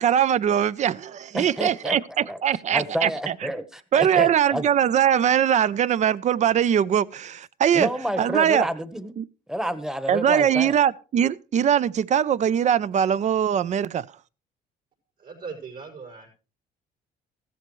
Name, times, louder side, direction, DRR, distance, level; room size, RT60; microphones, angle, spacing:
voice 1, 0.0-3.3 3.9-7.9 8.2-8.7 9.2-9.3 10.1-14.1, right 9 dB, 45° right, 0.5 m, -21 dB
voice 2, 1.3-2.0 2.2-2.4 2.7-4.7 7.7-9.2 9.5-10.8, equal, 5° right, 1.1 m, -29 dB
voice 3, 15.2-16.3, right 5 dB, 70° right, 5.2 m, -39 dB
15.0 x 13.0 x 3.1 m
cardioid pair, 110°, 17 cm